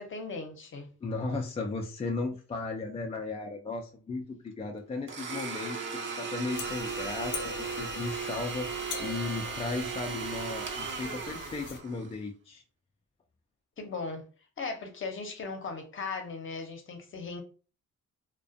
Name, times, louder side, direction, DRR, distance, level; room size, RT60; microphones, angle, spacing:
voice 1, 0.0-0.9 13.8-14.2 14.6-17.4, left 4 dB, 40° left, 0.7 m, -38 dB
voice 2, 1.0-12.6, left 3 dB, 20° left, 0.3 m, -36 dB
Domestic sounds home sounds, 5.1-12.1, right 5 dB, 40° right, 0.6 m, -36 dB
sound 1, 6.5-11.8, left 6 dB, 80° left, 0.5 m, -43 dB
2.4 x 2.2 x 2.5 m
cardioid pair, 90°, 30 cm